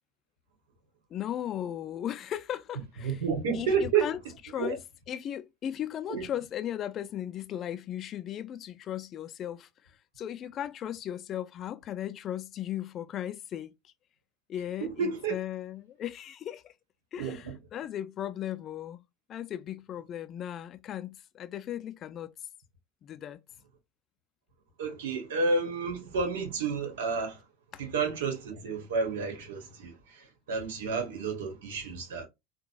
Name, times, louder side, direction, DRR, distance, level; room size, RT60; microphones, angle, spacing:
voice 1, 1.1-3.2 3.5-4.2 4.4-4.8 5.1-13.9 14.5-16.7 17.1-19.0 19.3-22.3 23.0-23.4 27.7-27.8, left 11 dB, 40° left, 0.3 m, -37 dB
voice 2, 3.0-4.1 4.6-4.8 6.1-6.3 14.8-15.4 17.2-17.6 24.8-27.4 27.8-32.2, right 5 dB, 85° right, 1.1 m, -30 dB
3.8 x 2.1 x 2.3 m
hypercardioid pair, 95°, 0 cm